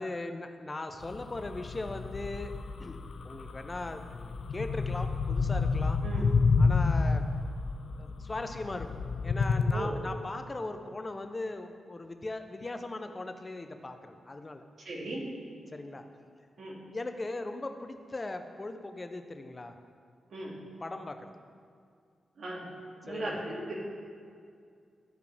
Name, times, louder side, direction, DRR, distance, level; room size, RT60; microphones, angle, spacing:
voice 1, 0.0-3.0 3.2-6.0 6.6-7.3 8.0-8.9 9.2-14.6 15.7-16.0 16.9-19.7 20.8-21.3 23.1-23.4, left 2 dB, 35° left, 7 dB, 0.8 m, -39 dB
sound 1, 1.0-9.7, left 4 dB, 70° left, 0.5 m, -29 dB
voice 2, 14.8-15.3 16.6-16.8 20.3-20.6 22.4-22.8 23.0-23.8, right 1 dB, 70° right, -4 dB, 2.2 m, -37 dB
14.0 x 4.7 x 3.5 m, 2.2 s
supercardioid pair, 45°, 0 cm